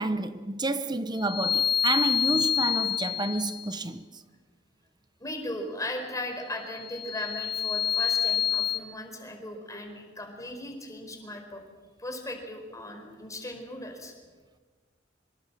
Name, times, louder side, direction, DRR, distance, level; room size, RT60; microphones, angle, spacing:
voice 1, 0.0-4.2, right 2 dB, 20° right, 0.8 m, -30 dB
sound 1, 1.2-3.7 6.7-8.8, left 9 dB, 55° left, 0.9 m, -27 dB
voice 2, 5.2-11.6 12.0-14.1, left 1 dB, 15° left, 4.6 m, -37 dB
25.0 x 22.5 x 7.6 m
head